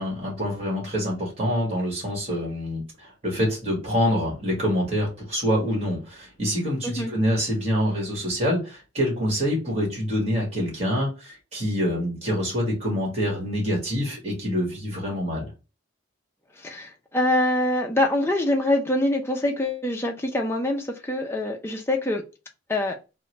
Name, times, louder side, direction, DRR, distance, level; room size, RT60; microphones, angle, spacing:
voice 1, 0.0-15.5, equal, 30° right, 1.5 m, -26 dB
voice 2, 16.6-22.2 22.7-23.0, left 1 dB, 10° left, 0.4 m, -24 dB
3.7 x 2.1 x 3.0 m
head